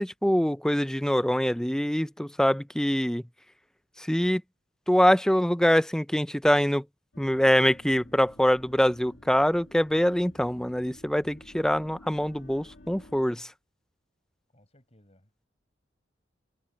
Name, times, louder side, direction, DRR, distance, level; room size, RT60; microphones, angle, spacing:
voice 1, 0.0-3.2 4.0-4.4 4.9-6.8 7.2-13.5, equal, 5° left, 0.5 m, -24 dB
sound 1, 7.1-13.3, left 1 dB, 65° left, 2.6 m, -52 dB
voice 2, 14.5-15.5, left 1 dB, 35° left, 6.7 m, -61 dB
head